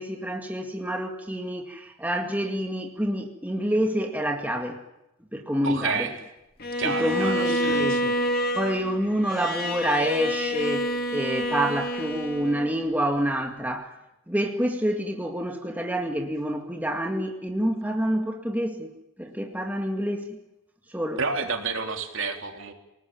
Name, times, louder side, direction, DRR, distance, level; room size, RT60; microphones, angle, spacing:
voice 1, 0.0-4.8 5.3-6.1 6.8-8.2 8.5-13.9 14.3-18.9 19.2-20.4 20.9-21.2, right 1 dB, 10° right, 3 dB, 2.2 m, -27 dB
voice 2, 5.6-6.2 6.8-8.0 21.2-22.7, right 4 dB, 65° right, 4 dB, 3.8 m, -30 dB
Bowed string instrument, 6.6-12.8, equal, 45° left, 2.7 m, -28 dB
28.0 x 19.5 x 9.1 m, 0.91 s
head